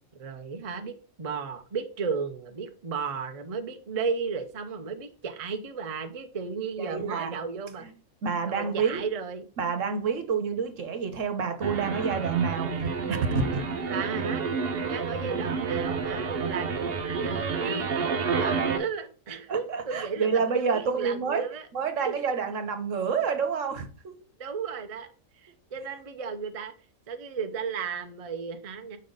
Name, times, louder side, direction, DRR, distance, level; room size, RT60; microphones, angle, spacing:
voice 1, 0.1-7.9 8.4-9.4 13.9-14.4 14.9-16.7 17.2-21.7 22.0-22.2 24.4-25.1 25.4-26.7 27.1-29.0, right 5 dB, 35° right, 0.7 m, -34 dB
voice 2, 6.8-7.3 7.8-7.9 8.2-9.0 9.6-13.6 19.5-21.5 21.7-24.1, right 5 dB, 70° right, 1.3 m, -28 dB
sound 1, 11.6-18.8, right 5 dB, 50° right, 1.1 m, -29 dB
7.1 x 5.3 x 3.9 m
omnidirectional pair, 1.4 m